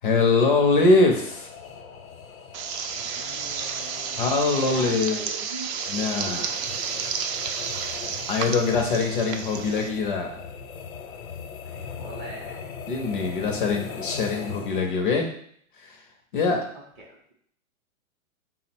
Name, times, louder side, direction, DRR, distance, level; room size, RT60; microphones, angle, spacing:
voice 1, 0.0-1.5 4.2-5.2 5.9-6.5 7.9-10.4 12.9-15.3 15.8-16.0 16.3-16.6, left 3 dB, 40° left, 3 dB, 0.4 m, -23 dB
sound 1, 0.6-15.2, left 6 dB, 80° left, 0.7 m, -40 dB
sound 2, 2.5-9.9, right 6 dB, 90° right, 0.6 m, -31 dB
voice 2, 2.7-5.7 6.2-7.0 11.6-12.8 16.7-17.2, right 2 dB, 20° right, -3 dB, 0.5 m, -44 dB
3.6 x 2.0 x 4.2 m, 0.63 s
hypercardioid pair, 155°, 41 cm